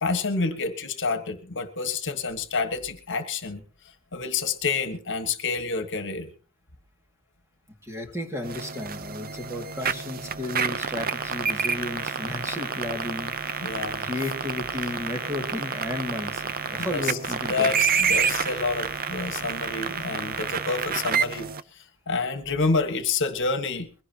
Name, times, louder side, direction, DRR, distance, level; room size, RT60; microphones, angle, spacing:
voice 1, 0.0-3.6 4.1-6.3 13.6-14.1 16.8-17.2 17.5-23.9, left 4 dB, 55° left, 8 dB, 1.6 m, -28 dB
voice 2, 7.8-13.7 14.0-17.9, left 2 dB, 10° right, 3 dB, 2.3 m, -33 dB
sound 1, 8.4-21.6, right 6 dB, 40° right, 0.7 m, -29 dB
22.0 x 16.5 x 2.9 m, 0.38 s
head